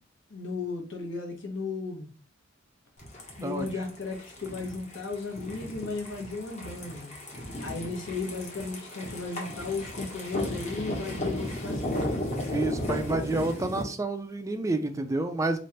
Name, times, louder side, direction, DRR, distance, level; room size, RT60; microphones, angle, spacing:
voice 1, 0.3-2.1 3.4-7.2 7.6-12.2, left 3 dB, 70° left, 2 dB, 1.1 m, -35 dB
sound 1, 3.0-13.8, left 1 dB, 35° left, 1.0 m, -35 dB
voice 2, 12.5-15.6, right 2 dB, 15° right, 8 dB, 0.3 m, -29 dB
3.1 x 2.4 x 4.3 m, 0.39 s
head